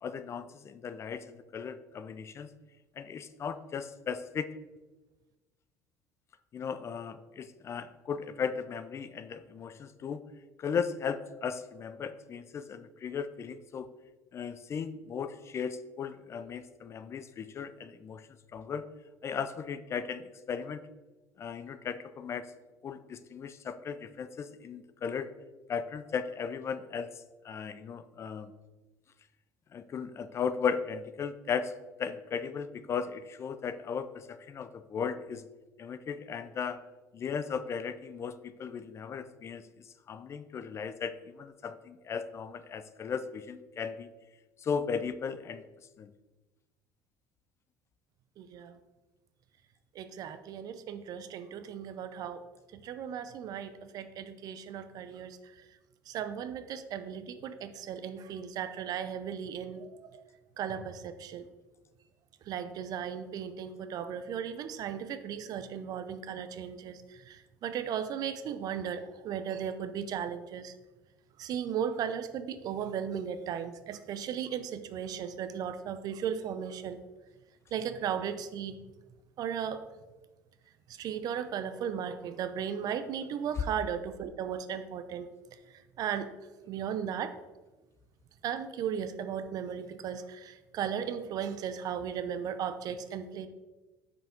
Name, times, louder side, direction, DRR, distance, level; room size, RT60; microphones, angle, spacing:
voice 1, 0.0-2.5 3.0-4.5 6.5-10.3 10.6-13.9 14.3-18.2 18.5-18.9 19.2-20.9 21.4-22.5 22.8-25.3 25.7-27.1 27.4-28.5 29.7-31.7 32.0-35.5 35.8-36.8 37.1-44.1 44.6-45.6 46.0-46.1, left 6 dB, 35° left, 13 dB, 0.4 m, -36 dB
voice 2, 48.4-48.8 50.0-52.4 52.7-55.5 56.1-60.2 60.6-61.5 62.5-70.7 71.4-77.0 77.7-78.8 79.4-79.8 81.0-85.3 86.0-86.3 86.7-87.3 88.4-93.5, right 8 dB, 55° right, 11 dB, 0.5 m, -36 dB
5.5 x 4.8 x 3.7 m, 1.2 s
supercardioid pair, 100°, 8 cm